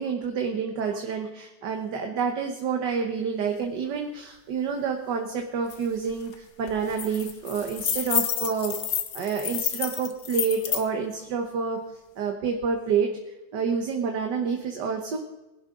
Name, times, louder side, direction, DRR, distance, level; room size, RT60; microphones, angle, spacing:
voice 1, 0.0-11.8 12.2-13.1 13.5-15.2, right 6 dB, 70° right, 3 dB, 1.8 m, -28 dB
sound 1, 5.7-5.8 6.1-6.3 6.7-10.8, left 9 dB, 75° left, 1.8 m, -29 dB
20.0 x 11.5 x 3.8 m, 1.0 s
omnidirectional pair, 2.0 m